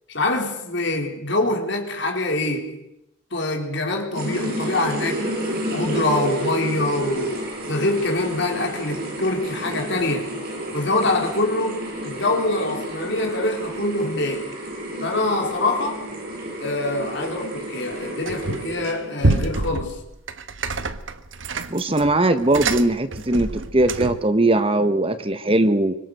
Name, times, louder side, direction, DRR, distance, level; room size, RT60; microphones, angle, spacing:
voice 1, 0.1-2.8 3.3-5.3 5.7-10.3 10.7-14.5 15.0-16.1 16.6-20.0, left 2 dB, 60° left, 4.2 m, -25 dB
sound 1, 4.1-19.2, equal, 50° right, 7.8 m, -31 dB
sound 2, 18.3-18.8 19.2-24.3, right 2 dB, 65° right, 1.3 m, -27 dB
voice 2, 21.7-26.0, right 2 dB, 25° right, 1.2 m, -20 dB
25.5 x 24.0 x 6.7 m
head